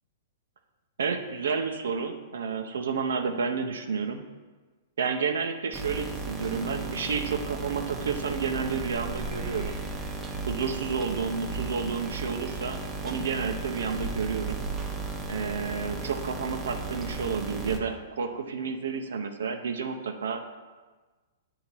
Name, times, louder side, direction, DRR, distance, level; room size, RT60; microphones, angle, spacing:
voice 1, 1.0-4.2 5.0-9.8 10.5-14.6 15.3-20.6, right 5 dB, 80° right, 5 dB, 0.6 m, -30 dB
sound 1, 5.7-17.8, right 3 dB, 15° right, 0.7 m, -35 dB
8.0 x 2.8 x 6.0 m, 1.3 s
hypercardioid pair, 135°, 0 cm